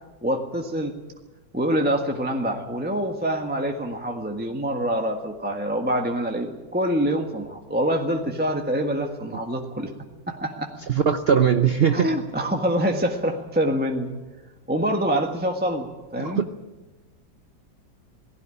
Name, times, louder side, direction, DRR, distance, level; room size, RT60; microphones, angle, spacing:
voice 1, 0.2-0.9 1.5-9.9 10.3-10.7 11.9-14.1 14.7-16.4, equal, 5° right, 3 dB, 1.3 m, -25 dB
voice 2, 10.9-12.1 16.2-16.4, right 7 dB, 60° right, 8 dB, 0.6 m, -20 dB
19.0 x 16.0 x 10.0 m, 1.2 s
omnidirectional pair, 2.1 m